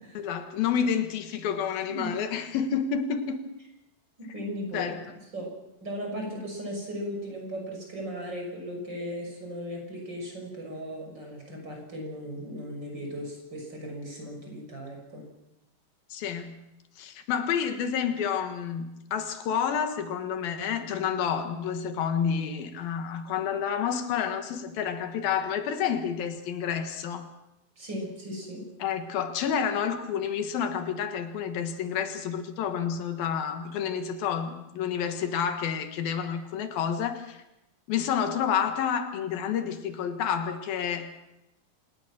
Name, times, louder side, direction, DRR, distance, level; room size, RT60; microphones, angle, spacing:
voice 1, 0.1-3.5 4.7-5.0 16.1-16.7 17.0-27.3 28.8-37.4 37.9-41.1, left 7 dB, 85° left, 7 dB, 3.3 m, -29 dB
voice 2, 1.9-2.2 4.2-5.0 5.3-5.5 5.8-15.2 27.8-28.6, equal, 30° right, 1 dB, 6.8 m, -37 dB
27.5 x 18.0 x 6.2 m, 0.90 s
omnidirectional pair, 4.1 m